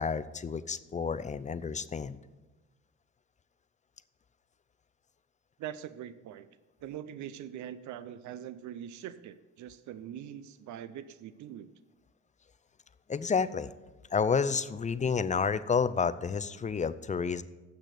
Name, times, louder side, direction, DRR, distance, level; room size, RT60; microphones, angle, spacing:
voice 1, 0.0-2.2 13.1-13.7 14.1-17.4, left 5 dB, 25° left, 14 dB, 0.4 m, -30 dB
voice 2, 5.6-6.5 6.8-11.7, right 10 dB, 70° right, 14 dB, 0.5 m, -42 dB
8.1 x 6.4 x 6.7 m, 1.1 s
cardioid pair, 90°, 30 cm